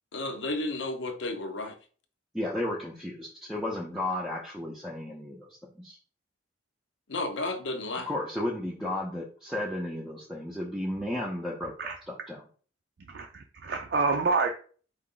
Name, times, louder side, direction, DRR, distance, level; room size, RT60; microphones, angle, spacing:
voice 1, 0.1-1.8 7.1-8.1, left 2 dB, 75° left, 0.8 m, -32 dB
voice 2, 2.3-6.0 8.1-11.7 12.1-12.4, left 1 dB, ahead, 0.6 m, -33 dB
voice 3, 13.1-14.5, right 4 dB, 60° right, 0.5 m, -27 dB
4.7 x 2.5 x 3.8 m
head